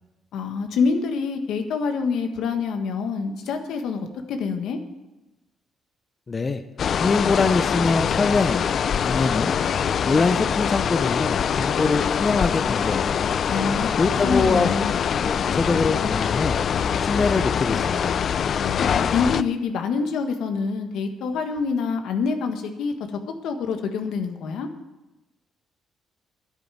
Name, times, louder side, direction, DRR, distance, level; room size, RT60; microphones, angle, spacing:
voice 1, 0.3-4.8 13.5-13.9 14.2-14.9 18.6-22.9 23.3-24.7, left 5 dB, 80° left, 6 dB, 1.5 m, -26 dB
voice 2, 6.3-6.6 7.0-8.6 9.0-9.5 10.0-13.2 14.0-14.7 15.2-16.6 17.0-18.1, left 4 dB, 35° left, 8 dB, 0.8 m, -23 dB
sound 1, 6.8-19.4, left 7 dB, 55° left, 0.4 m, -24 dB
10.5 x 8.4 x 9.0 m, 1.0 s
cardioid pair, 90°, 0 cm